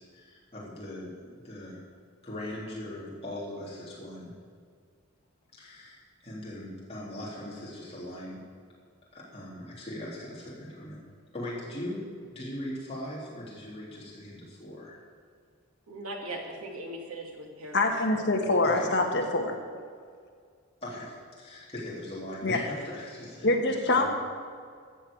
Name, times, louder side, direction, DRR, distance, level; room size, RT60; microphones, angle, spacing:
voice 1, 0.0-1.8 2.2-4.3 5.5-8.4 9.1-11.0 11.3-15.0 16.3-16.4 18.6-19.0 20.8-24.1, left 1 dB, 25° left, -6 dB, 3.3 m, -40 dB
voice 2, 15.9-18.3, right 1 dB, 80° right, 1 dB, 2.3 m, -40 dB
voice 3, 17.7-19.6 22.4-22.6 23.4-24.1, left 2 dB, 50° left, 2 dB, 1.5 m, -25 dB
14.0 x 6.4 x 8.5 m, 2.1 s
head